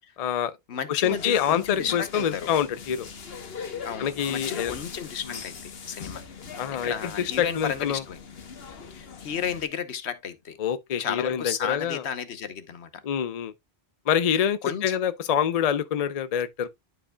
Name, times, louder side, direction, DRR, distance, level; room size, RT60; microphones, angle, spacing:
voice 1, 0.2-0.6 0.9-3.1 4.0-4.7 5.3-5.4 6.6-8.0 10.6-12.0 13.0-13.5 14.1-16.7, left 9 dB, 45° left, 0.6 m, -26 dB
voice 2, 0.7-2.5 3.8-6.2 6.8-8.2 8.9-10.6 11.0-13.0 14.6-15.0, left 8 dB, 85° left, 1.2 m, -33 dB
sound 1, 1.0-9.6, left 6 dB, 65° left, 1.3 m, -40 dB
11.5 x 4.9 x 2.2 m
omnidirectional pair, 1.1 m